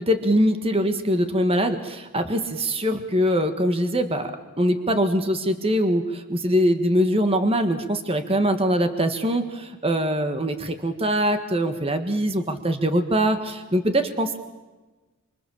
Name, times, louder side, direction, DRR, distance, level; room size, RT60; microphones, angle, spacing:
voice 1, 0.0-14.4, equal, 25° right, 8 dB, 1.6 m, -23 dB
26.5 x 25.5 x 7.2 m, 1.2 s
head